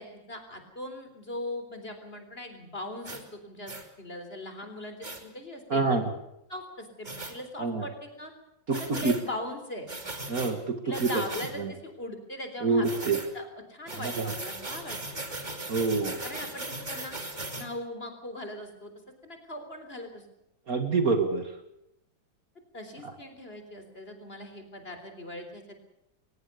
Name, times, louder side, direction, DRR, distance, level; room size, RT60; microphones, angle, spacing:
voice 1, 0.0-3.7 4.0-6.0 6.5-8.3 8.7-9.9 10.8-15.2 16.2-17.2 17.5-18.9 19.2-20.2 22.7-25.8, left 1 dB, 30° left, 6 dB, 4.0 m, -40 dB
sound 1, 3.0-3.2 3.7-3.8 5.0-5.2 7.0-7.3 8.7-9.2 9.9-10.5 10.9-11.5 12.8-13.3 13.9-17.7, right 2 dB, 25° right, 3.0 m, -38 dB
voice 2, 5.7-6.0 7.6-7.8 8.7-9.1 10.3-11.1 11.6-11.7 12.6-13.2 14.2-14.3 15.7-16.2 20.7-21.5, right 4 dB, 50° right, 7 dB, 2.5 m, -26 dB
22.5 x 20.5 x 6.8 m, 0.82 s
omnidirectional pair, 2.0 m